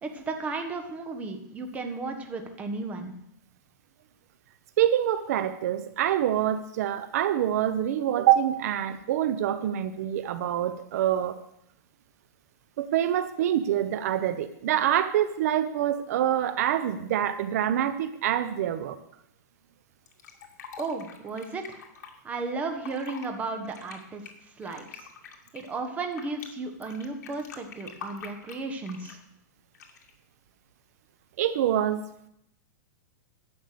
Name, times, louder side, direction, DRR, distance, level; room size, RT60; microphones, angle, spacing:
voice 1, 0.0-3.1 20.8-21.8 22.2-25.1 25.5-29.2, right 3 dB, 15° right, 5 dB, 1.3 m, -34 dB
voice 2, 4.8-11.4 12.8-19.0 31.4-32.0, right 11 dB, 60° right, 12 dB, 0.7 m, -26 dB
Fill (with liquid), 20.1-22.1 22.7-23.3 23.6-26.5 26.8-29.2 29.7-30.1, left 7 dB, 70° left, 2.3 m, -45 dB
11.5 x 7.9 x 6.7 m, 0.76 s
supercardioid pair, 160°, 10 cm